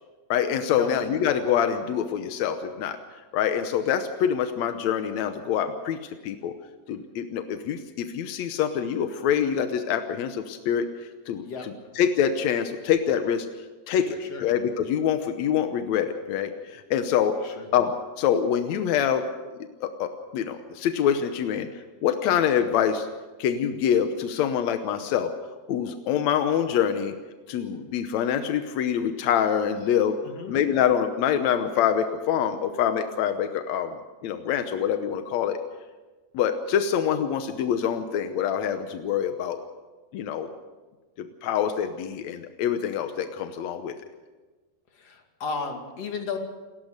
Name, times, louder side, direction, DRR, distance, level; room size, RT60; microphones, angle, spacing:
voice 1, 0.3-3.0 3.3-6.0 6.2-6.5 6.9-11.4 12.0-13.5 13.9-17.4 17.7-19.2 19.8-21.7 22.0-23.1 23.4-25.3 25.7-27.1 27.5-30.2 30.5-34.0 34.2-35.6 36.3-39.6 40.1-40.5 41.2-43.9, left 8 dB, 75° left, 8 dB, 1.7 m, -25 dB
voice 2, 11.3-11.9 14.1-14.5 17.4-17.7 30.2-30.5 44.9-46.4, left 5 dB, 45° left, 4 dB, 3.0 m, -34 dB
29.0 x 14.0 x 6.6 m, 1.3 s
omnidirectional pair, 4.3 m